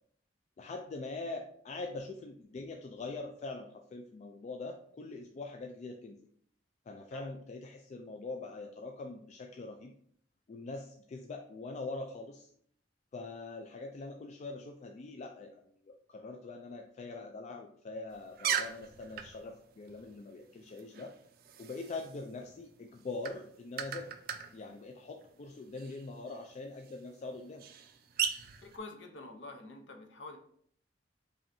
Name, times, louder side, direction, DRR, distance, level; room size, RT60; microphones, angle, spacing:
voice 1, 0.6-6.2 6.9-9.9 10.5-12.5 13.1-21.1 21.6-24.1 24.5-27.6, left 3 dB, 40° left, 2 dB, 0.3 m, -43 dB
sound 1, 18.1-28.8, right 8 dB, 55° right, 0.4 m, -41 dB
voice 2, 28.6-30.4, left 2 dB, 70° left, 5 dB, 0.7 m, -47 dB
5.4 x 2.7 x 2.6 m, 0.62 s
head